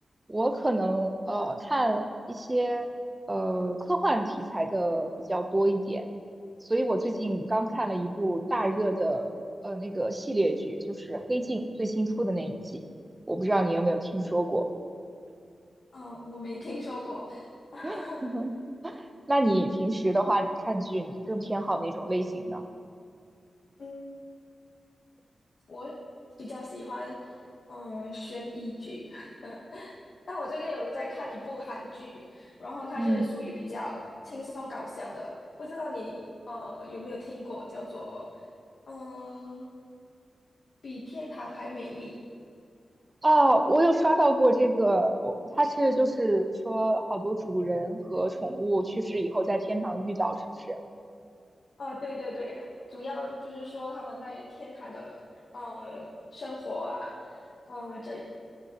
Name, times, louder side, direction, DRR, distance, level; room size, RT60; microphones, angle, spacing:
voice 1, 0.3-2.9 3.3-6.0 6.7-9.3 9.6-12.6 13.3-14.7 17.8-18.5 18.8-22.6 33.0-33.3 43.2-50.4 50.7-50.8, right 1 dB, 20° right, 6 dB, 0.7 m, -27 dB
voice 2, 15.9-17.5 17.7-18.2 18.9-19.0 23.8-24.0 25.7-25.9 26.4-27.3 27.7-29.9 30.2-35.3 35.6-38.4 38.9-39.6 40.8-42.1 51.8-55.2 55.5-57.4 57.7-58.2, left 1 dB, 70° left, -6 dB, 1.2 m, -38 dB
9.4 x 8.8 x 2.9 m, 2.4 s
cardioid pair, 60°, 0 cm